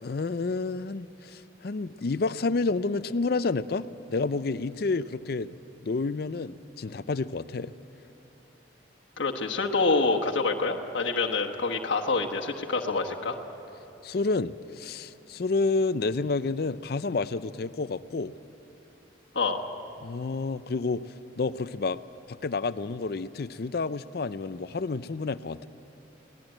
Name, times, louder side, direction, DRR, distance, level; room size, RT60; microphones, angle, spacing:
voice 1, 0.0-5.5 5.8-7.7 14.0-18.3 20.0-21.0 21.4-22.0 22.3-25.7, left 3 dB, 50° left, 15 dB, 0.5 m, -29 dB
voice 2, 9.2-13.4 19.3-19.7, left 3 dB, 75° left, 0 dB, 1.3 m, -27 dB
22.5 x 17.5 x 9.0 m, 3.0 s
head